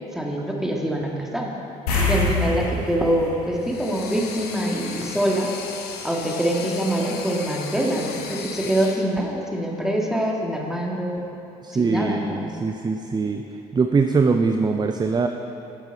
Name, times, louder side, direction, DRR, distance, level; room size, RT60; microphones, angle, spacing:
voice 1, 0.1-1.5 2.1-5.5 6.0-11.3 11.7-12.4, right 1 dB, ahead, -1 dB, 2.0 m, -24 dB
sound 1, 1.9-4.7 5.0-5.1 8.0-8.1 8.5-8.6, left 2 dB, 80° left, 1.8 m, -26 dB
sound 2, 3.6-9.1, left 6 dB, 55° left, 1.0 m, -36 dB
voice 2, 11.6-13.4 13.7-15.3, right 4 dB, 20° right, 5 dB, 0.6 m, -22 dB
13.5 x 8.8 x 4.0 m, 2.9 s
hypercardioid pair, 50°, 19 cm